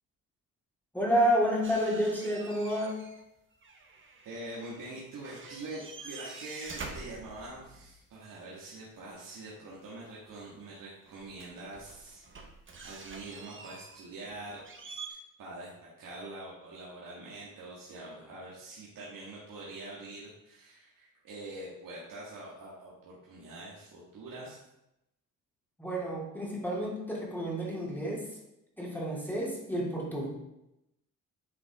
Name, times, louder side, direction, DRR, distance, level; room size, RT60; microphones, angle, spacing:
voice 1, 0.9-3.0 25.8-28.3 28.8-30.3, equal, 5° left, -5 dB, 2.8 m, -30 dB
sound 1, 1.6-3.3 3.5-4.9 5.2-8.0 10.3-10.4 11.0-15.1, right 4 dB, 35° right, 1.3 m, -47 dB
voice 2, 4.2-12.2 12.8-14.6 15.1-24.6, right 2 dB, 75° right, -6 dB, 2.0 m, -44 dB
9.6 x 5.4 x 3.7 m, 0.87 s
cardioid pair, 105°, 33 cm